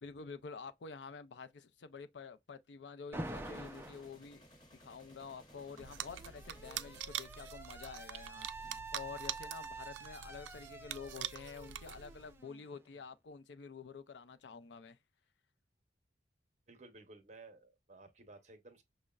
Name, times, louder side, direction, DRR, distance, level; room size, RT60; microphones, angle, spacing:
voice 1, 0.0-4.5 4.8-15.0, left 5 dB, 70° left, 0.4 m, -49 dB
Alarm, 3.1-4.1 5.3-13.0, right 2 dB, 10° right, 0.4 m, -48 dB
sound 1, 3.2-8.1, left 1 dB, 25° left, 1.0 m, -61 dB
sound 2, 5.8-12.4, right 11 dB, 85° right, 0.3 m, -45 dB
voice 2, 16.7-18.8, right 3 dB, 40° right, 0.8 m, -56 dB
6.2 x 2.1 x 2.3 m
head